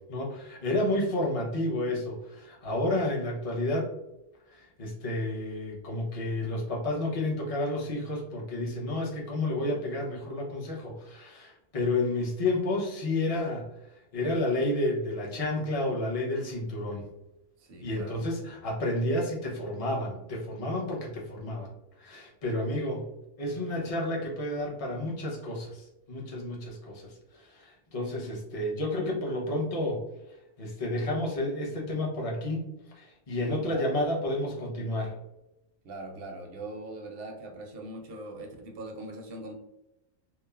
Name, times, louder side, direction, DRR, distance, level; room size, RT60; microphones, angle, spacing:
voice 1, 0.1-3.9 4.5-13.6 14.1-17.0 17.8-21.7 22.0-23.0 23.4-27.1 27.5-30.0 30.6-32.6 32.9-35.1, left 1 dB, 35° left, -3 dB, 0.6 m, -30 dB
voice 2, 17.6-18.3 33.4-33.9 35.8-39.5, right 2 dB, 65° right, 2 dB, 0.6 m, -41 dB
3.0 x 2.1 x 2.3 m, 0.90 s
omnidirectional pair, 1.4 m